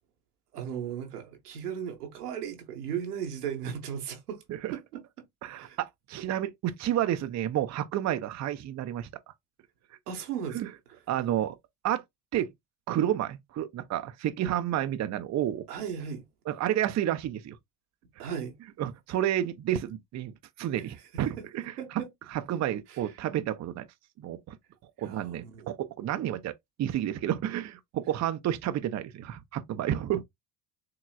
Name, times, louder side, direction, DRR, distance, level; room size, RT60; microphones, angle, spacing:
voice 1, 0.5-4.4 4.7-5.0 5.5-5.8 10.1-10.6 15.7-16.3 18.2-18.6 21.1-21.4 21.8-22.1 22.9-23.0 25.0-25.7, right 8 dB, 90° right, 1.2 m, -36 dB
voice 2, 5.4-9.1 10.5-10.7 11.1-11.6 11.8-12.0 12.3-12.5 12.9-15.7 16.5-17.6 18.8-22.0 22.3-23.9 24.2-24.6 25.0-26.5 26.8-30.2, right 11 dB, 40° right, 0.6 m, -30 dB
4.7 x 3.1 x 2.3 m
hypercardioid pair, 70°, 45 cm